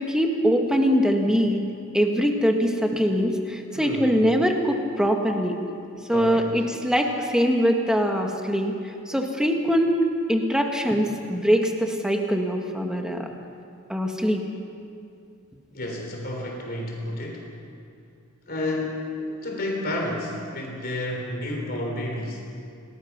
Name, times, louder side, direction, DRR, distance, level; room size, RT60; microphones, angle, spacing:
voice 1, 0.0-1.6 1.9-5.6 6.1-10.0 10.3-13.3 13.9-14.4, equal, 5° right, 2 dB, 1.8 m, -23 dB
voice 2, 3.7-4.2 6.1-6.6 15.7-17.5 18.5-22.4, left 1 dB, 45° left, 0 dB, 3.5 m, -31 dB
28.0 x 19.0 x 6.0 m, 2.5 s
head